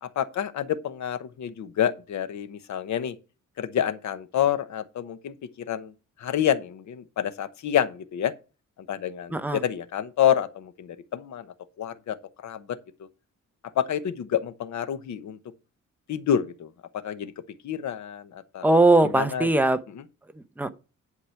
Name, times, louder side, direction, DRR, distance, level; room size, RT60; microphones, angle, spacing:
voice 1, 0.0-3.1 3.6-5.3 5.7-5.9 6.2-8.3 8.9-11.5 11.8-12.2 12.4-12.8 13.8-15.4 16.1-16.7 17.0-17.3 17.6-18.6 19.0-19.5 19.9-20.0, left 9 dB, 70° left, 1.0 m, -28 dB
voice 2, 9.3-9.6 18.6-19.8 20.6-20.7, right 2 dB, 5° right, 0.7 m, -20 dB
11.0 x 4.9 x 5.8 m
wide cardioid pair, 165°, 30 cm